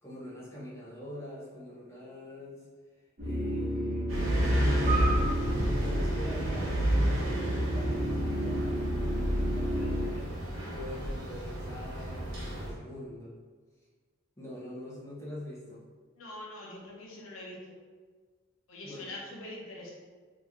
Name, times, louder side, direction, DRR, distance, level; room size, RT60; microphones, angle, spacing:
voice 1, 0.0-2.7 3.2-4.1 4.5-5.3 5.6-8.8 9.0-10.4 10.7-13.3 14.4-15.8 18.8-19.1, left 1 dB, 15° left, -8 dB, 0.9 m, -44 dB
sound 1, 3.2-10.0, equal, 45° right, 1.2 m, -33 dB
sound 2, 4.1-12.7, equal, 65° right, 0.9 m, -30 dB
voice 2, 16.2-17.6 18.7-19.9, left 1 dB, 70° left, -3 dB, 0.8 m, -43 dB
3.0 x 2.6 x 3.6 m, 1.5 s
head